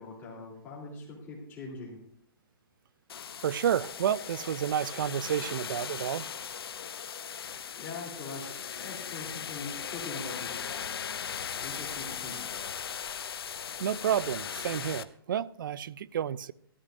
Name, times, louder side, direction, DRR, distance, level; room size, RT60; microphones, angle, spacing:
voice 1, 0.0-2.0 7.1-7.2 7.7-12.7, left 3 dB, 15° left, 3.3 m, -43 dB
sound 1, 3.1-15.0, left 8 dB, 80° left, 0.7 m, -38 dB
voice 2, 3.4-6.3 13.8-16.5, right 9 dB, 60° right, 0.4 m, -30 dB
14.0 x 13.5 x 2.6 m
hypercardioid pair, 160°, 13 cm